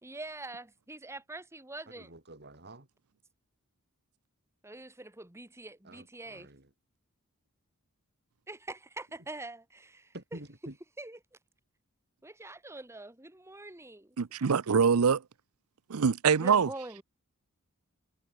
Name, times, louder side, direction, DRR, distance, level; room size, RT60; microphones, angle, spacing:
voice 1, 0.0-2.1 4.6-6.5 8.5-10.4 11.0-11.2 12.2-14.2 16.3-17.0, right 2 dB, 10° right, 1.6 m, -44 dB
voice 2, 1.9-2.9 5.8-6.7 10.1-10.8, right 1 dB, 50° right, 4.4 m, -48 dB
voice 3, 14.2-15.2 15.9-16.7, right 6 dB, 80° right, 0.6 m, -24 dB
head